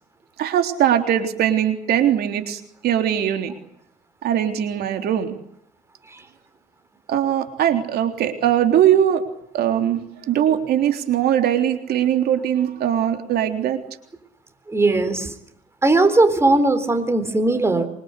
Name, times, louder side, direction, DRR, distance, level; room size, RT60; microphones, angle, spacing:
voice 1, 0.4-3.5 4.2-5.4 7.1-9.2 9.5-13.8, right 10 dB, 70° right, 6 dB, 3.5 m, -20 dB
voice 2, 14.7-15.3 15.8-17.9, right 2 dB, 15° right, 10 dB, 4.1 m, -18 dB
25.5 x 25.5 x 8.3 m, 0.72 s
cardioid pair, 110°, 17 cm